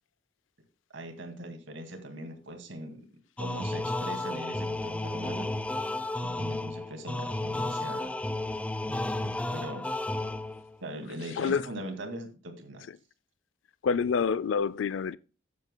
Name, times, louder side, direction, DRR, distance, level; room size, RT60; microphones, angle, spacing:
voice 1, 0.9-3.0 3.4-5.5 6.2-8.1 8.6-9.8 10.8-12.8, right 1 dB, 85° right, 2.2 m, -41 dB
sound 1, 3.4-10.8, left 2 dB, 5° left, 0.3 m, -33 dB
voice 2, 11.3-11.7 13.8-15.2, left 6 dB, 85° left, 0.4 m, -27 dB
13.5 x 7.4 x 2.2 m
head